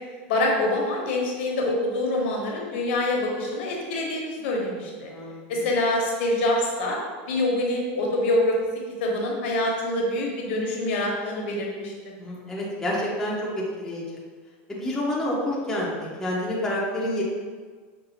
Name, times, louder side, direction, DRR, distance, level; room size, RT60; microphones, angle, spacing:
voice 1, 0.3-5.1 5.5-7.0 7.3-8.6 9.0-11.9, left 1 dB, 75° left, -1 dB, 0.9 m, -25 dB
voice 2, 4.4-5.7 12.2-14.2 14.8-17.2, left 1 dB, 5° left, -6 dB, 0.6 m, -29 dB
5.3 x 2.4 x 2.7 m, 1.5 s
supercardioid pair, 160°, 6 cm